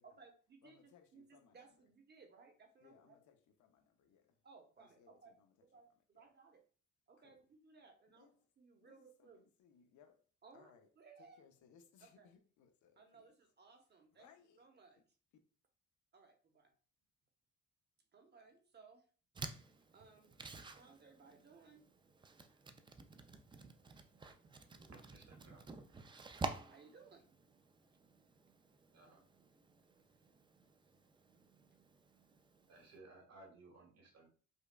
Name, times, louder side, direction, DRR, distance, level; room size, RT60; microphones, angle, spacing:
voice 1, 0.0-3.2 4.4-5.3 5.7-6.6 7.1-8.3 8.6-9.4 10.4-10.7 11.0-11.4 12.0-12.3 13.0-14.3 14.6-15.0 16.1-16.7 18.1-19.0 19.9-20.3 20.7-21.8 26.7-27.6 32.1-32.2, right 4 dB, 35° right, 1.0 m, -62 dB
voice 2, 0.6-1.7 2.8-4.4 4.8-5.7 6.1-6.3 7.2-7.4 8.1-8.5 8.8-10.2 10.5-10.9 11.2-13.3 14.1-14.6, left 7 dB, 75° left, 0.7 m, -67 dB
sound 1, 19.3-33.0, right 3 dB, 15° right, 0.3 m, -51 dB
voice 3, 24.1-25.6 28.9-29.2 32.7-34.3, right 2 dB, 60° right, 1.5 m, -61 dB
5.1 x 2.3 x 2.2 m
cardioid pair, 90°, 30 cm